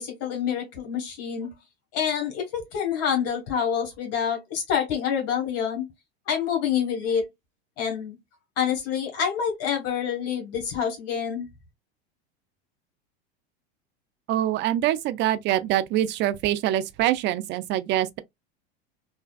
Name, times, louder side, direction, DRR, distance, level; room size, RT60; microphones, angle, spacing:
voice 1, 0.0-1.5 1.9-5.9 6.3-7.3 7.8-8.2 8.6-11.5, left 8 dB, 50° left, 1.4 m, -27 dB
voice 2, 14.3-18.1, right 13 dB, 35° right, 0.4 m, -24 dB
3.2 x 2.2 x 2.3 m
hypercardioid pair, 105°, 32 cm